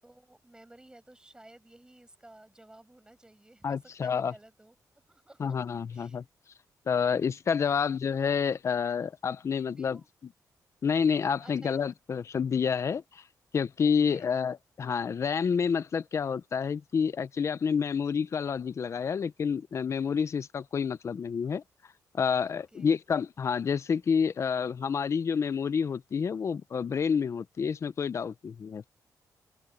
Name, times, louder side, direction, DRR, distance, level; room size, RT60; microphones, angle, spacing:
voice 1, 0.0-4.8 5.1-5.6 5.9-6.2 9.6-10.1 11.4-11.8 13.8-14.4 22.5-23.0, right 1 dB, 10° right, 7.5 m, -55 dB
voice 2, 3.6-4.3 5.4-6.2 6.9-10.0 10.8-13.2 13.5-21.6 22.2-28.9, left 6 dB, 45° left, 0.7 m, -29 dB
open air
cardioid pair, 115°, 7 cm